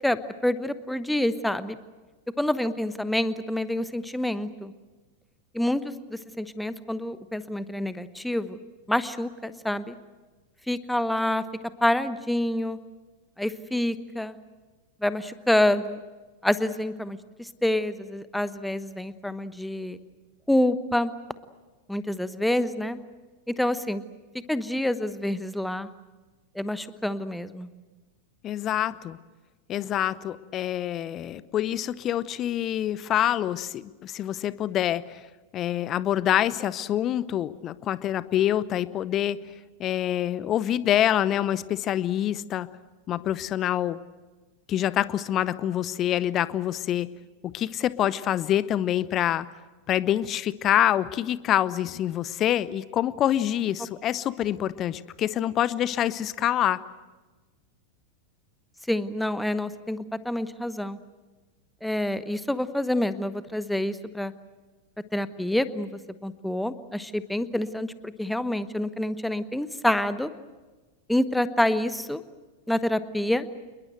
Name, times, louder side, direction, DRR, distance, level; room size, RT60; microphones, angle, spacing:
voice 1, 0.0-1.8 2.4-4.7 5.5-8.6 8.9-9.9 10.7-11.4 11.8-12.8 13.4-14.4 15.0-16.0 16.4-20.0 20.5-21.1 21.9-23.0 23.5-24.0 24.5-25.9 26.5-27.7 58.9-61.0 61.8-64.3 65.1-65.9 66.2-70.3 71.1-72.2 72.7-73.5, left 1 dB, 5° left, 13 dB, 1.1 m, -27 dB
voice 2, 28.4-29.2 29.7-35.2 35.5-39.4 39.8-42.7 43.1-44.0 44.7-47.1 47.4-49.5 49.9-56.8, left 11 dB, 30° left, 18 dB, 0.8 m, -26 dB
27.5 x 21.5 x 7.9 m, 1.3 s
figure-of-eight pair, 90°, 0 cm